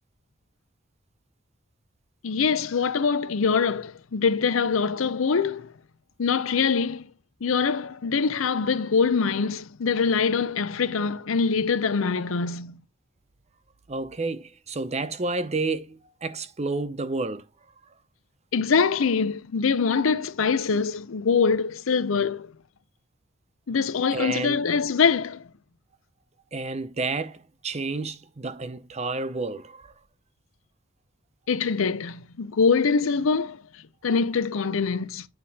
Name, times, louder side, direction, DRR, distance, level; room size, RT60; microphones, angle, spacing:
voice 1, 2.2-5.7 6.2-7.0 7.4-12.8 18.5-22.5 23.7-25.4 31.5-33.6 34.0-35.3, left 5 dB, 80° left, 0.6 m, -24 dB
voice 2, 13.9-17.4 24.1-24.6 26.5-29.9, right 3 dB, 35° right, 0.8 m, -30 dB
9.5 x 3.4 x 4.1 m
head